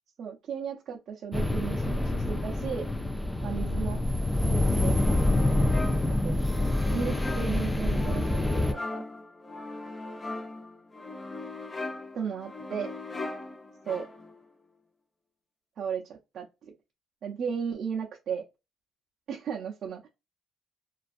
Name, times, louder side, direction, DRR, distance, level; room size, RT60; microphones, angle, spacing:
voice 1, 0.2-2.9 3.4-4.0 4.4-5.2 6.1-6.4 6.9-9.0 12.1-12.9 13.9-14.1 15.8-16.7 17.2-18.4 19.3-20.1, right 7 dB, 65° right, 0.5 m, -35 dB
sound 1, 1.3-8.7, left 1 dB, 15° left, 0.3 m, -26 dB
sound 2, 4.9-14.4, left 2 dB, 35° left, 0.8 m, -39 dB
2.4 x 2.3 x 2.5 m
cardioid pair, 90°, 0 cm